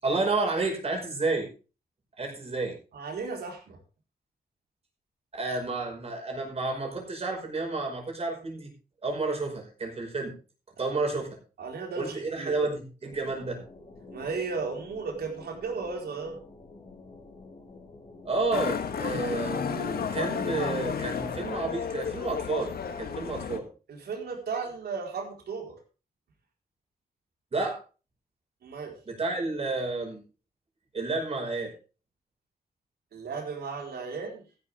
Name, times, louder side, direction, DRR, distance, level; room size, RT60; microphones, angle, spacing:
voice 1, 0.0-1.5 2.2-2.8 5.3-8.7 9.0-10.3 10.8-11.4 11.9-13.6 18.2-23.7 27.5-27.8 29.1-30.2 30.9-31.7, right 3 dB, 40° right, 1 dB, 5.4 m, -30 dB
voice 2, 2.9-3.8 11.6-12.7 14.1-16.4 23.9-25.8 28.6-29.0 33.1-34.4, right 4 dB, 90° right, 1 dB, 4.5 m, -35 dB
sound 1, 13.1-18.7, left 3 dB, 40° left, 4.1 m, -49 dB
Motorcycle, 18.5-23.6, left 7 dB, 75° left, 1.7 m, -32 dB
14.5 x 11.5 x 3.6 m, 0.35 s
wide cardioid pair, 115°, 16 cm